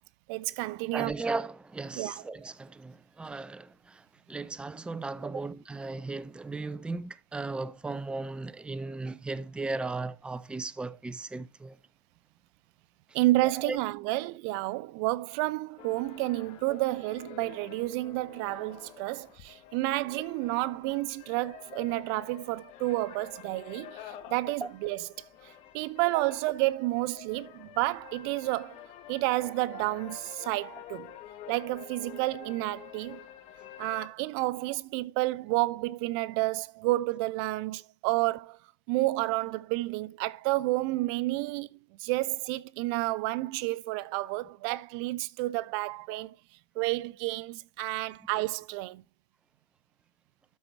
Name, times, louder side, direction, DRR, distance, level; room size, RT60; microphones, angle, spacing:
voice 1, 0.3-1.1 1.9-2.2 13.1-25.1 25.7-28.8 29.1-31.1 31.5-33.2 33.8-38.6 38.9-46.3 46.8-49.0, right 19 dB, 55° right, 0.5 m, -30 dB
voice 2, 0.9-11.8 13.6-13.8 24.6-24.7 26.2-26.3, right 3 dB, 5° right, 0.5 m, -36 dB
sound 1, 15.8-34.1, left 10 dB, 45° left, 1.9 m, -48 dB
12.5 x 4.5 x 4.1 m
supercardioid pair, 120°, 16 cm